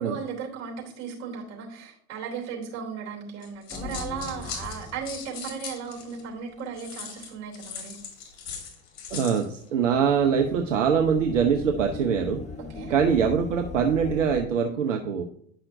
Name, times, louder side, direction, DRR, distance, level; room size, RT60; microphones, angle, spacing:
voice 1, 0.0-8.0 12.6-12.9, right 6 dB, 40° right, 0 dB, 3.1 m, -36 dB
sound 1, 3.4-6.2 6.8-9.5, left 6 dB, 55° left, 2.7 m, -39 dB
sound 2, 3.7-5.7 6.0-6.1 7.0-7.2 9.4-14.4, left 4 dB, 20° left, 0.6 m, -39 dB
voice 2, 9.1-12.4 12.9-15.2, right 7 dB, 70° right, 4 dB, 0.8 m, -23 dB
10.0 x 5.7 x 2.6 m, 0.65 s
figure-of-eight pair, 85°, 38 cm